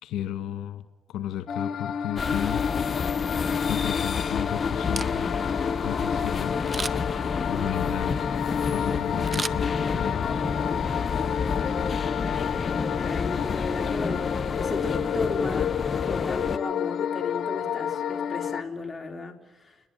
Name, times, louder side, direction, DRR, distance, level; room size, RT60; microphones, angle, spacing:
voice 1, 0.0-2.9 3.7-5.3 5.8-6.6 7.5-8.2 8.7-10.4, left 11 dB, 85° left, 10 dB, 1.5 m, -34 dB
sound 1, 1.5-18.6, left 8 dB, 65° left, 1.2 m, -30 dB
sound 2, 2.2-16.6, left 5 dB, 40° left, 0.9 m, -29 dB
Camera, 4.8-5.5 6.7-7.2 9.3-10.2 10.6-10.7, right 4 dB, 30° right, 0.9 m, -34 dB
voice 2, 13.0-15.7 16.1-19.8, left 3 dB, 20° left, 4 dB, 3.9 m, -35 dB
30.0 x 22.5 x 8.7 m, 1.2 s
cardioid pair, 90°, 0 cm